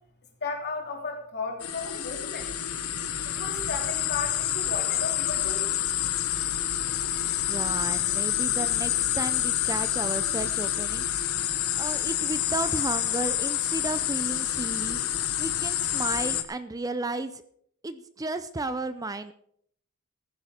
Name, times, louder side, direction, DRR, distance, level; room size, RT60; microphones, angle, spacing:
voice 1, 0.4-2.5 3.2-5.7, left 4 dB, 50° left, 2 dB, 3.2 m, -35 dB
sound 1, 1.6-16.4, left 12 dB, 70° left, 1.1 m, -28 dB
voice 2, 7.5-11.1 11.7-15.0 15.4-17.4 17.8-19.3, right 2 dB, 15° right, 11 dB, 0.5 m, -33 dB
14.5 x 10.5 x 5.1 m, 0.67 s
head